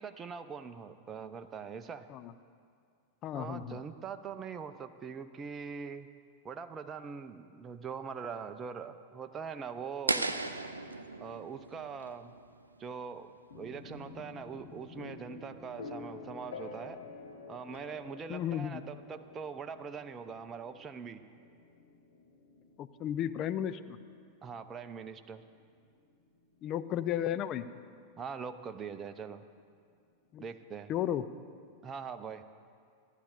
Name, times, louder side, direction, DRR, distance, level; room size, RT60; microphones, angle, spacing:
voice 1, 0.0-2.1 3.3-6.1 6.4-10.3 11.2-12.3 12.8-17.0 17.5-21.2 24.4-25.5 28.2-29.4 30.4-30.9 31.8-32.4, right 6 dB, 20° right, 9 dB, 0.6 m, -42 dB
voice 2, 3.2-3.8 18.3-18.8 22.8-24.0 26.6-27.7 30.3-30.4 30.9-31.3, left 10 dB, 35° left, 13 dB, 0.5 m, -34 dB
under bridge, 10.1-13.1, right 2 dB, 80° right, 0.6 m, -36 dB
sound 1, 13.5-27.3, left 4 dB, 60° left, 1.3 m, -50 dB
15.0 x 10.0 x 6.9 m, 2.3 s
figure-of-eight pair, 90°, 0 cm